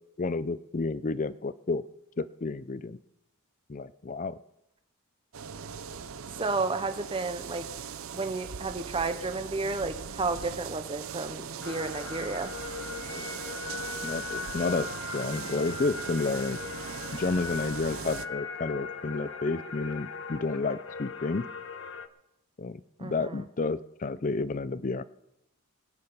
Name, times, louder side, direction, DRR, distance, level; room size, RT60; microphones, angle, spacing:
voice 1, 0.2-1.8 2.2-3.0 3.7-4.4 13.1-13.3 14.0-16.6 17.1-21.5 22.6-25.0, left 3 dB, 35° left, 16 dB, 0.5 m, -31 dB
sound 1, 5.3-18.3, right 7 dB, 65° right, 0.6 m, -40 dB
voice 2, 6.4-7.7 8.1-12.5 23.0-23.3, right 3 dB, 25° right, 9 dB, 0.7 m, -32 dB
sound 2, 11.6-22.1, left 5 dB, 60° left, 0.8 m, -39 dB
21.5 x 8.9 x 5.5 m, 0.88 s
head